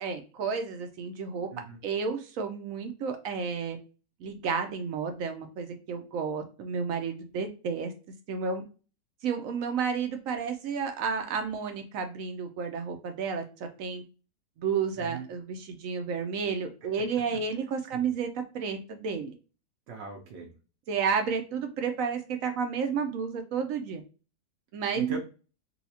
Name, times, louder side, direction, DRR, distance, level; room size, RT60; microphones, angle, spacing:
voice 1, 0.0-1.5 1.8-3.8 4.2-7.9 8.3-8.6 9.2-13.4 13.8-14.0 14.6-18.3 18.5-19.3 20.9-24.0 24.7-25.2, right 6 dB, 70° right, 6 dB, 0.8 m, -31 dB
voice 2, 15.0-15.3 17.9-18.1 19.9-20.5 24.9-25.2, right 3 dB, 85° right, 0 dB, 1.4 m, -40 dB
4.1 x 2.3 x 2.7 m, 0.34 s
omnidirectional pair, 1.8 m